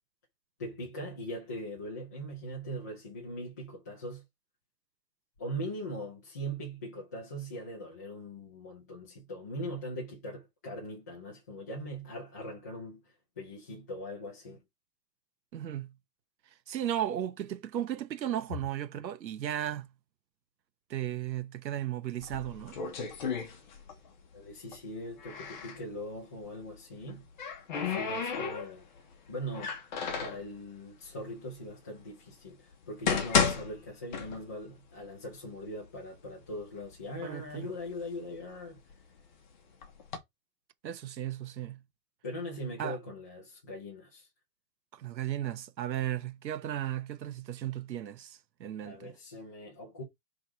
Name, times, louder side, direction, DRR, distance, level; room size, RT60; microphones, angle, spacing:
voice 1, 0.6-4.2 5.4-13.0 13.4-14.6 24.3-27.3 27.9-28.8 29.3-29.7 30.2-32.6 32.9-38.8 42.2-44.3 48.8-50.0, equal, 10° left, 0.6 m, -40 dB
voice 2, 15.5-15.9 16.7-19.9 20.9-22.8 37.2-37.7 40.8-41.8 42.8-43.0 44.9-49.1, right 11 dB, 90° right, 1.2 m, -35 dB
sound 1, 22.2-24.1 24.4-25.8 26.9-29.0 29.5-30.5 31.2-31.3 32.0-32.1 32.7-34.7 35.0-35.1 35.8-35.9 36.3-37.0 37.5-39.2 39.8-40.2, left 6 dB, 30° left, 1.0 m, -33 dB
4.6 x 3.7 x 5.6 m
hypercardioid pair, 180°, 50 cm